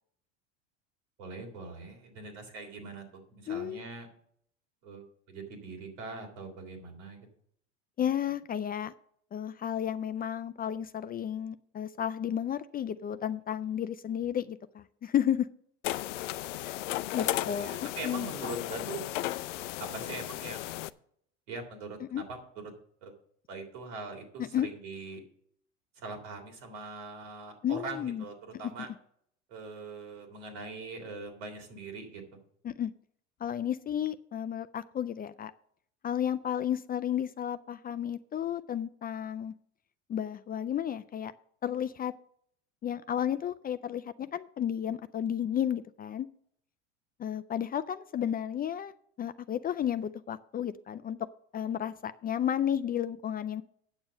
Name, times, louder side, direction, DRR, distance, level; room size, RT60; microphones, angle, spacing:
voice 1, 1.2-4.1 4.8-7.2 17.3-19.1 19.8-20.7 21.5-22.4 23.0-23.1 23.5-25.2 26.0-28.9 29.5-32.2, right 3 dB, 75° right, 2 dB, 3.4 m, -42 dB
voice 2, 3.5-3.8 8.0-8.9 9.3-15.5 16.6-16.7 17.1-18.3 22.0-22.2 24.4-24.7 27.6-28.2 32.6-32.9 33.4-35.5 36.0-39.5 40.1-41.3 41.6-42.1 42.8-46.3 47.2-48.9 49.2-51.2 51.5-53.6, left 9 dB, 25° left, 12 dB, 0.4 m, -32 dB
sound 1, 15.8-20.9, left 15 dB, 80° left, 0.5 m, -35 dB
8.9 x 7.0 x 6.3 m, 0.66 s
hypercardioid pair, 85°, 36 cm